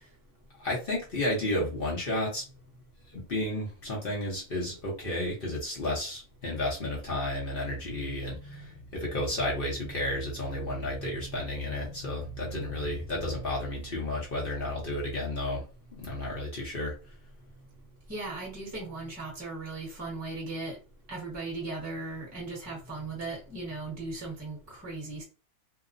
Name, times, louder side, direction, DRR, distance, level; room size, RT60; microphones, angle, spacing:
voice 1, 0.6-2.4 3.1-15.6 15.9-16.9, left 1 dB, 45° left, 0.9 m, -32 dB
voice 2, 11.0-12.7 13.2-13.4 18.1-20.8 21.1-25.2, right 3 dB, 10° right, 1.0 m, -38 dB
2.9 x 2.1 x 2.5 m
omnidirectional pair, 1.5 m